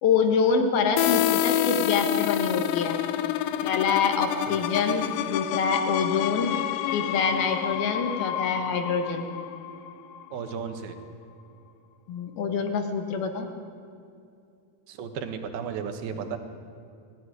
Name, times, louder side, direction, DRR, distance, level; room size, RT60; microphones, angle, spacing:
voice 1, 0.0-3.0 3.6-6.5 6.9-9.3 12.1-13.5, left 5 dB, 70° left, 6 dB, 3.3 m, -26 dB
sound 1, 1.0-10.5, left 12 dB, 90° left, 2.8 m, -28 dB
voice 2, 10.3-11.0 14.9-16.4, right 7 dB, 70° right, 7 dB, 3.2 m, -34 dB
21.0 x 14.0 x 9.9 m, 2.5 s
omnidirectional pair, 4.7 m